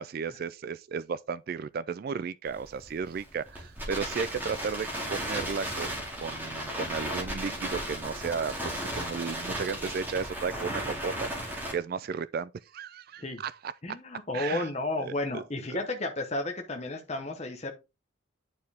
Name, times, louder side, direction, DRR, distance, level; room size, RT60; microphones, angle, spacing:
voice 1, 0.0-14.0 14.3-14.7 15.0-15.4 15.7-15.8, right 5 dB, 45° right, 0.3 m, -34 dB
Crackle, 2.5-11.7, equal, 10° right, 2.3 m, -35 dB
voice 2, 13.8-17.7, left 2 dB, 30° left, 1.0 m, -32 dB
9.6 x 4.5 x 3.5 m
head